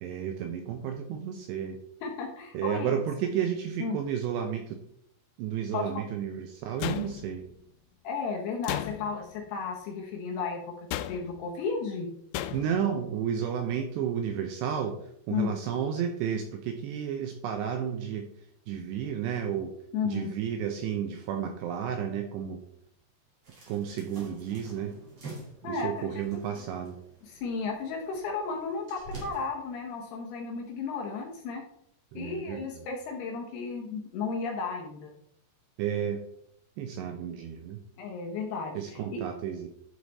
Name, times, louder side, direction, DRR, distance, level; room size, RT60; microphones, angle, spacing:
voice 1, 0.0-1.8 2.5-4.8 5.4-7.5 12.5-18.3 18.7-19.7 20.0-22.6 23.7-24.9 25.6-27.0 32.1-32.8 35.8-36.2 36.8-37.8 38.8-39.7, right 8 dB, 80° right, 5 dB, 2.5 m, -32 dB
voice 2, 2.0-3.0 3.8-4.0 5.7-6.1 8.0-10.6 11.1-12.1 15.3-15.5 19.9-20.3 25.6-26.4 27.2-31.6 32.1-35.1 38.0-39.2, left 5 dB, 70° left, 1 dB, 2.7 m, -34 dB
sound 1, 6.8-7.5 8.6-9.3 10.9-11.5 12.3-12.9, left 13 dB, 90° left, 3.1 m, -35 dB
sound 2, 23.4-29.5, right 2 dB, 40° right, 2.6 m, -47 dB
11.5 x 4.9 x 4.1 m, 0.72 s
omnidirectional pair, 5.6 m